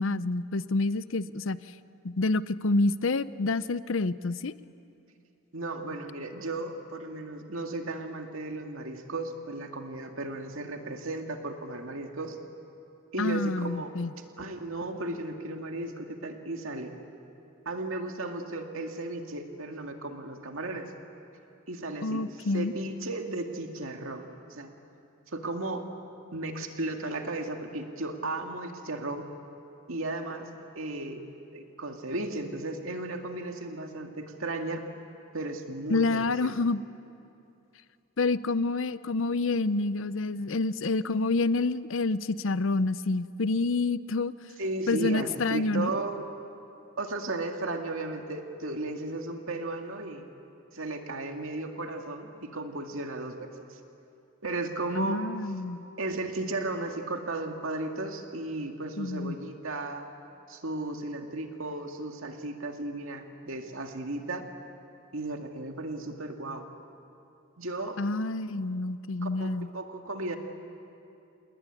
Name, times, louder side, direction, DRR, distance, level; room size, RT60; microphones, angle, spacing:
voice 1, 0.0-1.6 2.0-4.5 13.2-14.1 22.0-22.7 35.9-36.8 38.2-44.3 44.9-45.9 55.0-55.9 59.0-59.4 68.0-69.7, left 3 dB, 65° left, 15 dB, 0.7 m, -28 dB
voice 2, 5.5-12.4 13.1-13.9 14.4-16.9 17.7-20.9 21.7-22.3 22.5-24.2 24.5-24.7 25.3-25.9 26.3-29.3 29.9-30.5 30.8-34.8 35.3-36.6 44.6-46.2 47.0-50.3 50.7-53.8 54.4-55.3 56.0-60.1 60.5-64.5 65.1-66.7 67.6-68.0 69.2-70.4, right 2 dB, 75° right, 4 dB, 2.2 m, -35 dB
28.0 x 20.5 x 9.9 m, 2.7 s
head